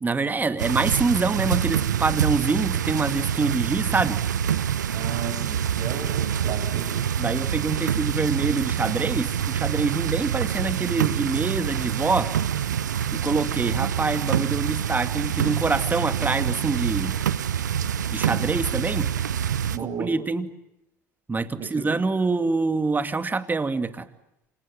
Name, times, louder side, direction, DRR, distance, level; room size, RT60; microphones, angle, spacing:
voice 1, 0.0-4.2 7.2-12.3 13.1-17.2 18.1-19.1 20.0-20.5 21.3-24.1, right 3 dB, 20° right, 10 dB, 2.4 m, -25 dB
sound 1, 0.6-19.8, right 9 dB, 80° right, 1.0 m, -26 dB
voice 2, 4.9-6.9 19.7-20.1 21.6-21.9, right 6 dB, 40° right, 8 dB, 6.7 m, -34 dB
29.5 x 27.0 x 7.3 m, 0.87 s
figure-of-eight pair, 70°, 10 cm